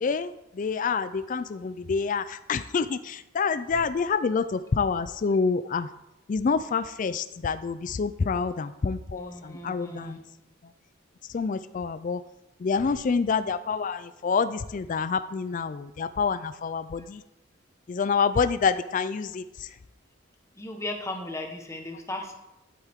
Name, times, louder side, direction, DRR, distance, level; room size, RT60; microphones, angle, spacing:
voice 1, 0.0-5.9 6.3-10.2 11.3-12.2 12.6-17.2 17.9-19.7, left 5 dB, 40° left, 13 dB, 0.3 m, -27 dB
voice 2, 9.2-10.2 20.5-22.3, left 2 dB, 15° left, 3 dB, 1.1 m, -36 dB
11.5 x 8.2 x 3.6 m, 0.91 s
head